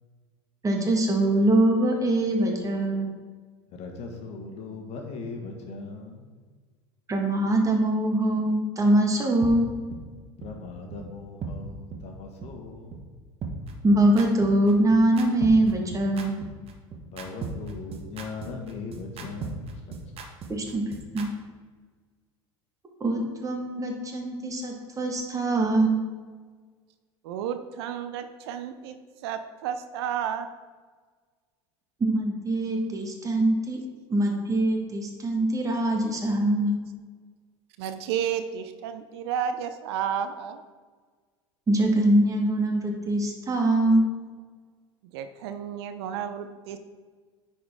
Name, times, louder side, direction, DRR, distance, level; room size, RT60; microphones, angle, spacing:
voice 1, 0.6-3.1 7.1-9.7 13.8-16.4 20.5-20.8 21.1-21.3 23.0-25.9 32.0-33.8 34.1-36.7 41.7-44.1, right 1 dB, 25° right, 2 dB, 1.6 m, -23 dB
voice 2, 3.7-6.3 10.4-13.0 17.0-20.1, left 4 dB, 45° left, 3 dB, 1.5 m, -39 dB
sound 1, 9.4-9.5 9.9-10.0 10.4-10.5 10.9-11.0 11.4-11.5 11.9-12.0 12.4-12.5 12.9-13.0 13.4-21.3, right 5 dB, 40° right, 1.1 m, -36 dB
voice 3, 27.2-29.0 29.2-30.5 37.8-40.6 45.1-46.8, right 8 dB, 65° right, 9 dB, 0.5 m, -32 dB
10.0 x 4.4 x 3.6 m, 1.5 s
hypercardioid pair, 75°, 14 cm